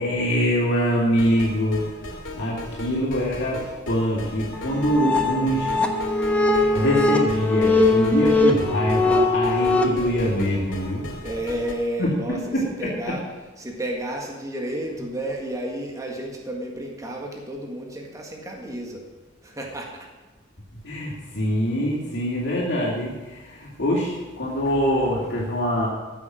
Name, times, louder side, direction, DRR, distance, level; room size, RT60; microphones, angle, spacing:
voice 1, 0.0-2.0 2.4-6.0 6.7-11.1 12.0-12.9 20.8-25.9, equal, 65° left, -5 dB, 2.6 m, -24 dB
sound 1, 1.2-11.7, left 1 dB, 85° left, 2.3 m, -37 dB
sound 2, 4.5-9.9, left 2 dB, 5° left, 1.1 m, -21 dB
voice 2, 11.1-13.2 13.6-19.0 19.4-20.1, right 1 dB, 20° right, 0 dB, 1.7 m, -31 dB
14.5 x 7.3 x 6.3 m, 1.2 s
head